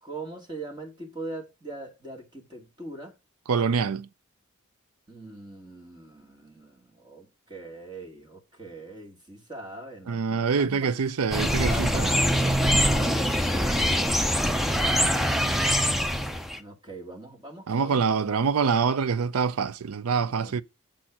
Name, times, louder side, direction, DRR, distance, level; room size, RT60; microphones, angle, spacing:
voice 1, 0.0-3.2 5.1-10.9 11.4-15.0 16.6-18.4 20.4-20.6, right 2 dB, 20° right, 2.2 m, -41 dB
voice 2, 3.5-4.1 10.1-12.1 17.7-20.6, right 5 dB, 85° right, 0.5 m, -25 dB
sound 1, 11.3-16.6, equal, ahead, 0.5 m, -24 dB
7.6 x 4.2 x 5.9 m
head